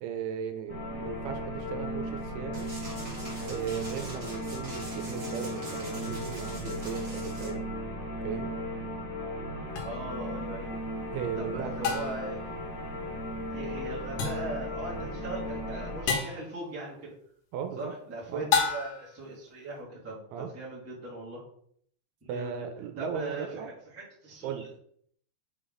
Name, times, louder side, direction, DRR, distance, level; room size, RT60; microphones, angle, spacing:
voice 1, 0.0-2.7 3.4-7.7 8.2-8.5 11.1-12.0 17.5-17.9 18.3-18.5 20.3-20.5 22.3-23.7 24.4-24.7, right 8 dB, 85° right, 7 dB, 2.6 m, -37 dB
sound 1, 0.7-16.1, equal, 55° left, 1.3 m, -36 dB
sound 2, 2.5-7.5, right 1 dB, 35° right, 1.1 m, -44 dB
sound 3, 9.8-9.9 11.8-12.3 14.2-14.6 16.1-16.5 18.5-19.1, left 5 dB, 80° left, 3.1 m, -29 dB
voice 2, 9.8-10.7 11.4-12.5 13.5-17.1 17.8-21.4 22.2-22.6 23.0-24.7, right 2 dB, 5° right, -7 dB, 1.1 m, -39 dB
6.4 x 4.0 x 3.8 m, 0.64 s
omnidirectional pair, 4.6 m